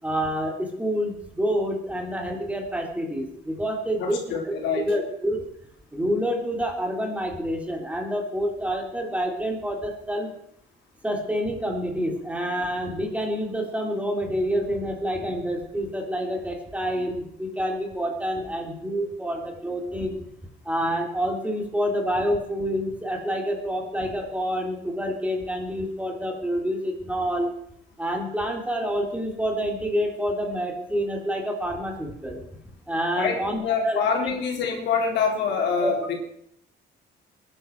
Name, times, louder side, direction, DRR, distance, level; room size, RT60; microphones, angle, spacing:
voice 1, 0.0-4.6 4.8-5.4 5.9-10.3 11.0-20.2 20.6-27.5 28.0-32.4 32.9-34.3 35.8-35.9, equal, 5° right, 1 dB, 3.3 m, -28 dB
voice 2, 4.0-4.8 33.2-36.2, left 5 dB, 85° left, 1 dB, 3.7 m, -25 dB
21.5 x 11.0 x 4.6 m, 0.73 s
cardioid pair, 120°, 18 cm